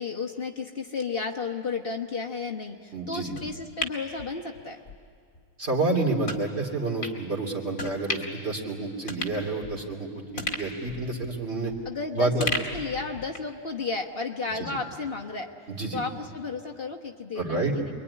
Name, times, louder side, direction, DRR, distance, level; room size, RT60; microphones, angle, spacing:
voice 1, 0.0-4.8 11.8-15.5 15.9-17.9, left 4 dB, 45° left, 0 dB, 1.4 m, -33 dB
voice 2, 2.9-3.3 5.6-10.1 10.3-11.7 12.1-12.5 14.5-14.8 15.7-16.0 17.4-17.9, right 2 dB, 50° right, -1 dB, 3.4 m, -29 dB
sound 1, 3.4-5.0 5.3-5.5 6.2-6.4 7.0-7.2 7.8-8.4 8.7-8.8 9.1-10.0 10.4-12.0 12.4-13.6 13.9-14.0, left 2 dB, 75° left, 2.7 m, -35 dB
26.5 x 22.5 x 9.8 m, 2.2 s
omnidirectional pair, 1.4 m